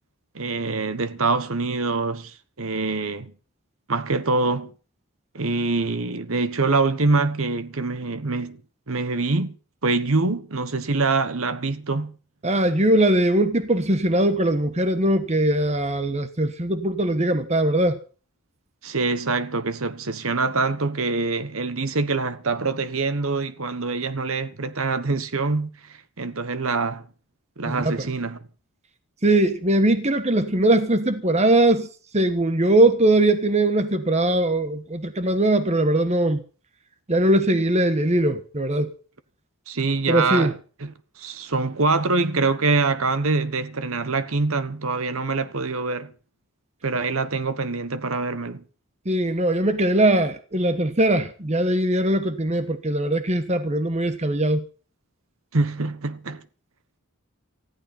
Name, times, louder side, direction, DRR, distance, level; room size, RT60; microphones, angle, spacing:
voice 1, 0.3-3.3 3.9-4.7 5.3-8.6 8.9-9.5 9.8-12.2 18.8-27.1 27.6-28.4 39.7-46.1 46.8-48.6 55.5-56.4, right 3 dB, 65° right, 1.2 m, -25 dB
voice 2, 12.4-18.0 27.6-28.1 29.2-31.9 32.1-36.4 37.1-38.9 40.1-40.5 49.0-54.6, right 1 dB, 30° right, 1.3 m, -21 dB
19.5 x 14.5 x 4.4 m
head